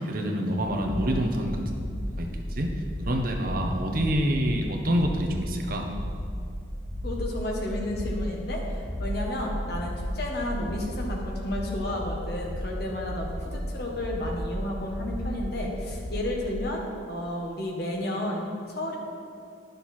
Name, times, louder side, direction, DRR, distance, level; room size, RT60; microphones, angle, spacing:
voice 1, 0.0-2.7 3.0-5.9, equal, 50° right, 2 dB, 1.0 m, -27 dB
sound 1, 0.6-16.4, equal, 30° left, 1.2 m, -34 dB
voice 2, 7.0-16.8 17.1-19.0, left 1 dB, 60° left, -1 dB, 1.5 m, -32 dB
11.0 x 6.7 x 4.4 m, 2.4 s
head